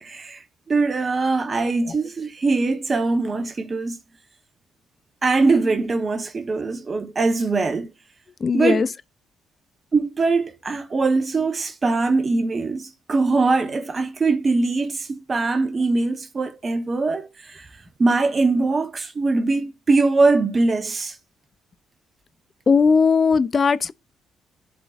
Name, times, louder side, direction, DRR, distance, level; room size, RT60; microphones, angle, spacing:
voice 1, 0.0-4.0 5.2-7.9 8.5-8.8 9.9-17.7 18.0-21.2, right 3 dB, 40° right, 0.9 m, -22 dB
voice 2, 8.4-8.9 22.7-23.9, left 5 dB, 40° left, 0.5 m, -18 dB
11.0 x 3.8 x 2.5 m
hypercardioid pair, 45°, 0 cm